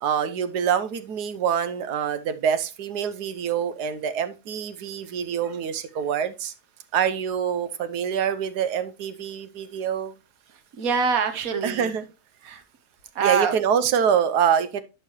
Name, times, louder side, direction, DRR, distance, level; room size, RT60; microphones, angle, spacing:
voice 1, 0.0-6.5 6.9-10.1 11.6-12.0 13.2-14.8, right 8 dB, 85° right, 11 dB, 1.3 m, -25 dB
voice 2, 10.5-11.9 12.4-12.6 13.1-13.5, right 6 dB, 65° right, 8 dB, 1.5 m, -25 dB
11.0 x 5.6 x 3.0 m, 0.29 s
omnidirectional pair, 1.7 m